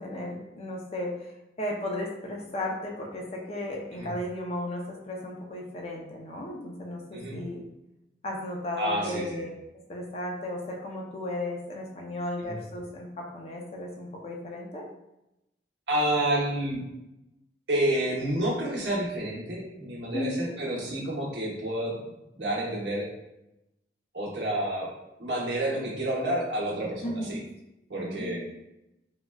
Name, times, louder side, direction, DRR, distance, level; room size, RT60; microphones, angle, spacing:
voice 1, 0.0-7.6 8.2-14.9 20.1-20.5 27.0-27.4 28.0-28.4, left 1 dB, 35° left, 0 dB, 0.5 m, -35 dB
voice 2, 8.8-9.4 12.4-12.5 15.9-16.8 17.7-22.1 22.3-23.1 24.1-24.9 25.2-27.4 27.9-28.4, right 1 dB, 80° right, -3 dB, 0.9 m, -29 dB
3.7 x 2.1 x 2.2 m, 0.90 s
head